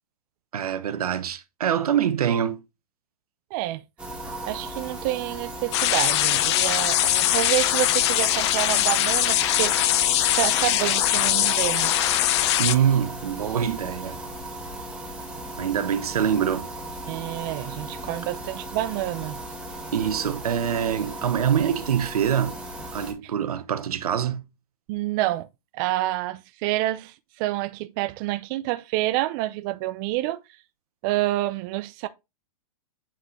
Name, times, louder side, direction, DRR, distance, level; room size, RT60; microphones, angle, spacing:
voice 1, 0.5-2.6 12.6-14.2 15.6-16.7 19.9-22.6 22.9-24.4, right 9 dB, 85° right, 0.9 m, -24 dB
voice 2, 3.5-3.8 4.5-10.0 10.4-11.9 17.1-19.4 24.9-25.5 25.7-30.4 31.0-32.1, right 16 dB, 35° right, 0.5 m, -28 dB
sound 1, 4.0-23.1, right 1 dB, 5° right, 1.7 m, -36 dB
sound 2, 5.7-12.7, left 13 dB, 50° left, 0.6 m, -22 dB
8.1 x 4.1 x 3.1 m
hypercardioid pair, 140°, 19 cm